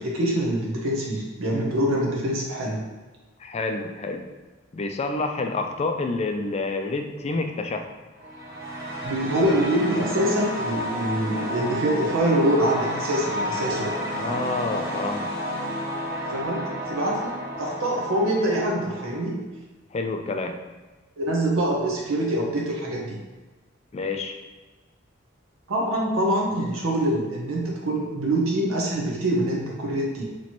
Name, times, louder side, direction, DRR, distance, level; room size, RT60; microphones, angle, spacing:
voice 1, 0.0-2.9 9.0-14.0 16.3-19.4 21.2-23.2 25.7-30.2, right 1 dB, 80° right, -2 dB, 0.8 m, -25 dB
voice 2, 3.4-4.2 4.7-8.0 14.1-15.3 19.9-20.6 23.9-24.4, left 3 dB, 30° left, 5 dB, 0.3 m, -28 dB
sound 1, 8.2-19.2, equal, 50° right, 1.3 m, -31 dB
3.0 x 2.9 x 4.3 m, 1.2 s
head